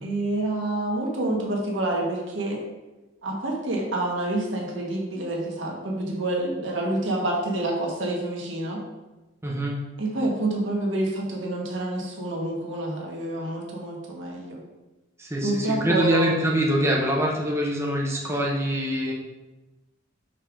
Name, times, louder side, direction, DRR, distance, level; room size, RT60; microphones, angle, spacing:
voice 1, 0.0-2.6 3.2-8.8 10.0-14.6 15.4-16.3, right 1 dB, 75° right, -1 dB, 1.4 m, -28 dB
voice 2, 9.4-9.8 15.2-19.1, equal, 15° right, -3 dB, 0.8 m, -24 dB
5.5 x 3.5 x 5.0 m, 1.1 s
head